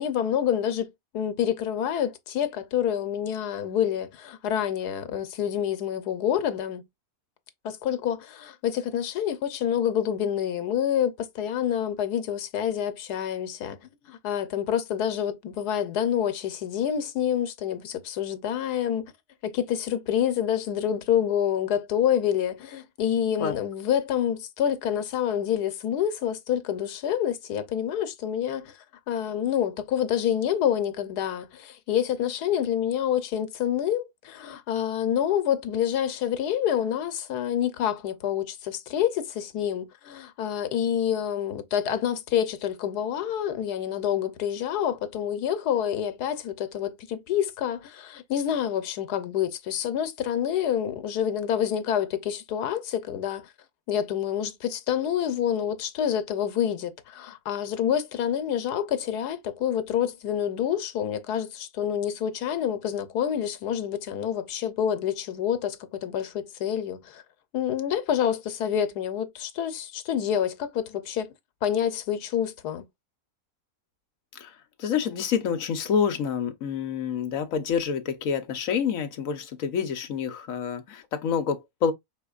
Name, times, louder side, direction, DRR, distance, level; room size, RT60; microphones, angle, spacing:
voice 1, 0.0-6.8 7.6-13.8 14.1-19.1 19.4-28.7 29.1-53.5 53.9-67.2 67.5-71.3 71.6-72.9, left 9 dB, 85° left, 1.3 m, -27 dB
voice 2, 74.8-81.9, left 7 dB, 65° left, 1.2 m, -27 dB
5.1 x 4.2 x 2.4 m
omnidirectional pair, 1.6 m